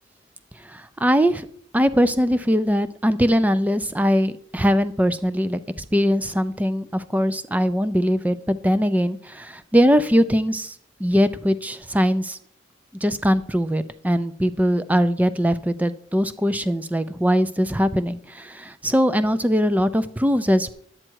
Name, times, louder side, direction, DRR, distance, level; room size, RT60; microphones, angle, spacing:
voice 1, 0.6-1.5 1.7-5.6 5.9-12.4 13.0-20.7, equal, 10° right, 13 dB, 0.4 m, -21 dB
11.0 x 8.8 x 4.6 m, 0.65 s
head